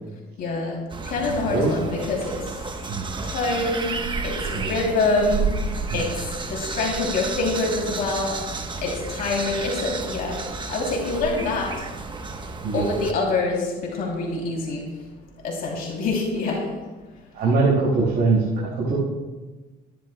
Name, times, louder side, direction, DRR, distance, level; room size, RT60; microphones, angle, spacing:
voice 1, 0.4-0.8 1.1-2.3 3.2-3.9 4.2-5.5 5.9-6.1 6.5-8.4 8.8-10.4 10.7-11.7 12.7-14.8 15.4-16.6 17.4-17.5, left 3 dB, 60° left, -2 dB, 3.0 m, -25 dB
sound 1, 0.9-13.1, right 4 dB, 30° right, 1.0 m, -31 dB
voice 2, 17.3-19.0, right 3 dB, 75° right, -6 dB, 4.6 m, -22 dB
23.0 x 10.5 x 2.2 m, 1.2 s
cardioid pair, 110°, 17 cm